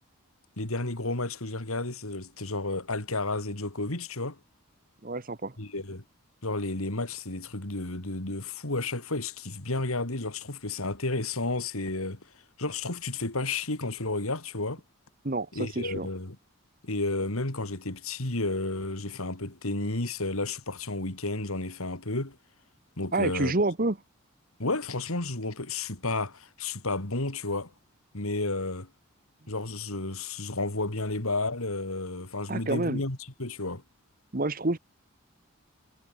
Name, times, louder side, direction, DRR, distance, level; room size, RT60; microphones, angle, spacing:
voice 1, 0.6-4.4 5.6-6.0 6.4-12.2 12.6-14.8 15.5-16.4 16.8-22.4 23.0-23.5 24.6-27.7 28.1-28.9 29.5-33.8, left 2 dB, 75° left, 3.1 m, -32 dB
voice 2, 5.0-5.5 15.2-16.1 23.1-24.0 32.5-33.0 34.3-34.8, right 2 dB, 40° right, 1.2 m, -28 dB
head